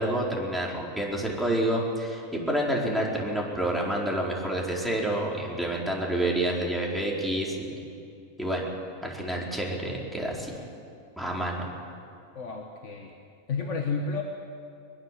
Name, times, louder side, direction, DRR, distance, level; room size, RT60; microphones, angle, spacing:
voice 1, 0.0-7.7 8.4-8.7 9.0-10.5 11.2-11.7, right 1 dB, ahead, -3 dB, 4.1 m, -28 dB
voice 2, 12.4-13.1 13.5-14.2, left 4 dB, 55° left, 1 dB, 1.8 m, -31 dB
22.5 x 22.0 x 7.6 m, 2.4 s
omnidirectional pair, 1.5 m